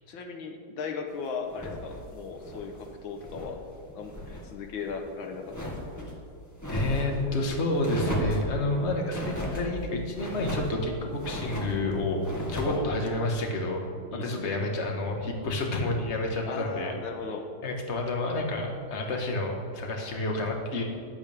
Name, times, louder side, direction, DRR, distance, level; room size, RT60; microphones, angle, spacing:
voice 1, 0.1-3.6 3.9-4.1 4.4-5.7 12.6-12.9 14.1-14.6 16.5-17.5, left 5 dB, 85° left, 4 dB, 1.8 m, -37 dB
sound 1, 1.5-3.6 3.9-4.4 4.8-6.1 6.6-7.2 7.8-8.5 9.1-9.7 10.1-10.8 11.2-11.8 12.2-12.8, equal, 10° left, 1.8 m, -35 dB
voice 2, 6.7-12.2 12.5-13.8 14.2-16.9 17.6-20.8, left 2 dB, 35° left, 1 dB, 1.7 m, -29 dB
15.5 x 11.5 x 3.6 m, 2.4 s
omnidirectional pair, 2.1 m